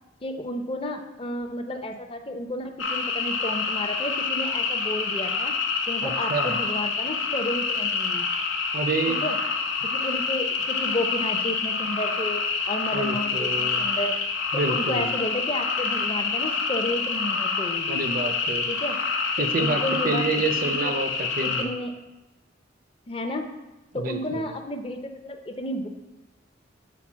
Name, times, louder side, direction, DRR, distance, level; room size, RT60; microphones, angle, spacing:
voice 1, 0.2-5.5 5.9-8.3 9.1-9.4 9.9-14.2 14.5-18.0 18.7-19.0 19.4-20.2 20.6-20.9 21.4-21.9 23.1-23.5 23.9-25.9, left 1 dB, 30° left, 6 dB, 0.5 m, -32 dB
sound 1, 2.8-21.6, left 4 dB, 90° left, 0.8 m, -27 dB
voice 2, 6.0-6.6 8.7-9.2 12.9-13.9 14.5-15.1 17.9-18.7 19.4-21.7 23.9-24.5, right 3 dB, 45° right, 6 dB, 0.5 m, -28 dB
5.8 x 4.0 x 6.1 m, 1.0 s
head